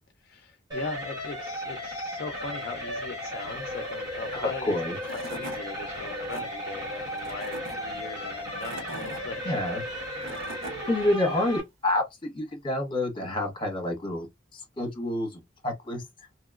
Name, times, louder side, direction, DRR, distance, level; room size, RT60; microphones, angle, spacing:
voice 1, 0.2-4.7 5.1-9.6, left 3 dB, 50° left, 0.4 m, -40 dB
sound 1, 0.7-11.6, equal, 20° right, 1.4 m, -35 dB
voice 2, 4.3-4.9 9.4-9.8 10.2-10.5 10.9-14.3 14.5-16.0, left 1 dB, 25° left, 1.1 m, -28 dB
Tools / Wood, 4.7-4.8 5.0-5.6 6.1-6.4 7.2-7.8 8.4-9.2 10.0-10.8, right 2 dB, 80° right, 0.9 m, -40 dB
2.9 x 2.9 x 2.4 m
head